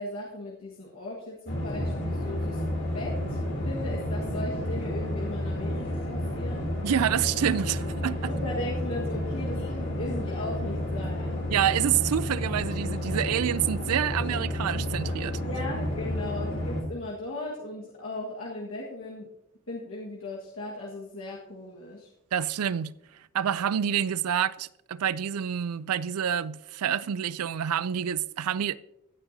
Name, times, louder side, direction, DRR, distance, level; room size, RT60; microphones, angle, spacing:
voice 1, 0.0-2.6 2.9-3.4 3.6-6.7 8.2-11.4 15.4-19.3 19.7-22.1, left 2 dB, 70° left, 1.6 m, -37 dB
sound 1, 1.5-16.8, left 1 dB, 50° left, 3.0 m, -31 dB
voice 2, 6.8-8.3 11.5-15.4 22.3-22.9 23.3-28.8, right 9 dB, 90° right, 0.4 m, -27 dB
15.5 x 8.8 x 2.7 m
head